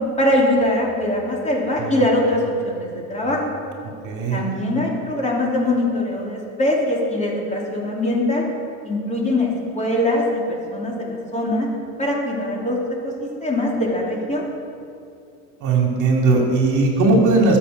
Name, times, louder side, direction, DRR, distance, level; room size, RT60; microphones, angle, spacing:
voice 1, 0.2-3.4 4.3-8.4 8.8-11.7 12.0-12.8 13.0-14.4, left 1 dB, 15° left, -3 dB, 3.4 m, -22 dB
voice 2, 4.0-4.4 15.6-17.6, right 3 dB, 45° right, 0 dB, 2.6 m, -18 dB
21.0 x 7.3 x 5.4 m, 2.5 s
supercardioid pair, 110°, 40 cm